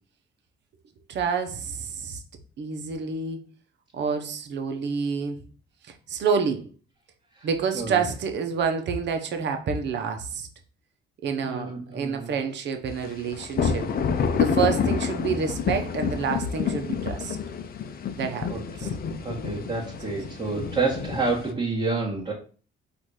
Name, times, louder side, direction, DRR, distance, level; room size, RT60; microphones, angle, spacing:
voice 1, 1.1-2.2 2.6-3.4 3.9-5.4 6.1-6.6 7.4-10.5 11.2-13.9 14.4-17.4 18.2-18.9, right 5 dB, 65° right, 0.8 m, -28 dB
voice 2, 7.7-8.1 11.4-12.3 18.5-22.3, right 3 dB, 25° right, 1.2 m, -29 dB
sound 1, 13.0-21.5, left 6 dB, 50° left, 0.6 m, -28 dB
4.1 x 2.6 x 4.7 m
cardioid pair, 90°, 20 cm